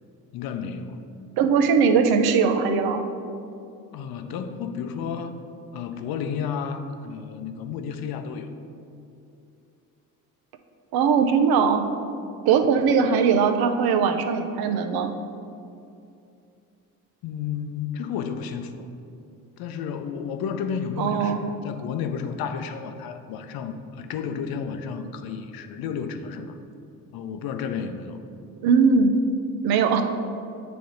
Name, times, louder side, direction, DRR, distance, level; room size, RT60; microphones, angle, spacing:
voice 1, 0.3-1.0 3.9-5.4 5.7-8.5 17.2-18.9 19.6-26.5 27.1-28.2, left 6 dB, 70° left, 8 dB, 0.6 m, -32 dB
voice 2, 1.4-3.1 10.9-11.8 12.4-15.1 21.0-21.5 28.6-29.1 29.6-30.0, right 6 dB, 75° right, 6 dB, 0.6 m, -20 dB
8.7 x 3.4 x 3.9 m, 2.6 s
supercardioid pair, 75°, 37 cm